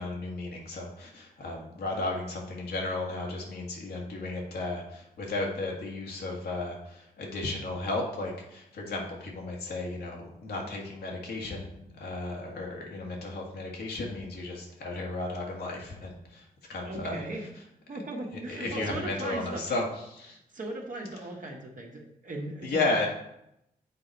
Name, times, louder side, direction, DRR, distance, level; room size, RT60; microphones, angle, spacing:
voice 1, 0.0-17.2 18.3-20.4 22.6-23.1, left 2 dB, 85° left, -1 dB, 1.6 m, -34 dB
voice 2, 16.8-17.5 17.9-19.6 20.5-23.1, right 1 dB, 55° right, 0 dB, 1.5 m, -37 dB
7.4 x 4.0 x 4.5 m, 0.80 s
cardioid pair, 65°, 16 cm